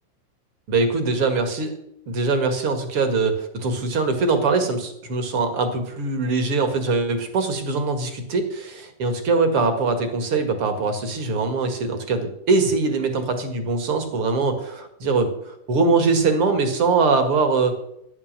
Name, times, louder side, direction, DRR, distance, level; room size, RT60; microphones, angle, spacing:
voice 1, 0.7-1.8 2.1-17.7, right 3 dB, 45° right, 7 dB, 2.4 m, -22 dB
12.5 x 10.0 x 7.4 m, 0.78 s
omnidirectional pair, 3.8 m